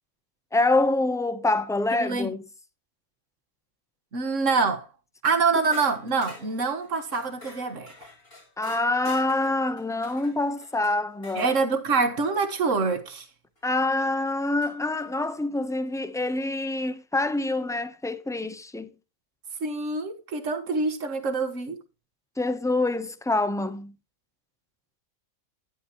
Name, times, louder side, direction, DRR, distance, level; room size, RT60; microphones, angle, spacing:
voice 1, 0.5-2.4 8.6-11.5 13.6-18.9 22.4-23.9, left 2 dB, 5° left, 0.6 m, -26 dB
voice 2, 2.0-2.4 4.1-4.9 5.2-7.9 11.4-13.3 19.6-21.8, right 4 dB, 65° right, 1.8 m, -25 dB
sound 1, 5.7-11.6 13.6-13.7 14.6-15.1, left 2 dB, 40° left, 4.1 m, -47 dB
11.0 x 11.0 x 3.0 m
omnidirectional pair, 1.5 m